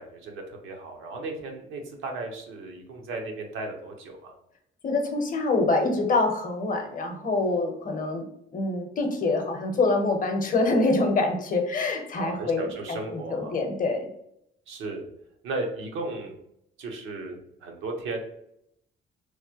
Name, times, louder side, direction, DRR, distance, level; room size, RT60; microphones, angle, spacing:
voice 1, 0.0-4.3 12.2-13.5 14.7-15.0 15.4-16.4 16.8-18.2, right 2 dB, 85° right, 2 dB, 0.7 m, -35 dB
voice 2, 4.8-8.2 8.5-14.1, left 3 dB, 45° left, 4 dB, 0.7 m, -25 dB
3.0 x 2.1 x 2.8 m, 0.75 s
cardioid pair, 90°, 20 cm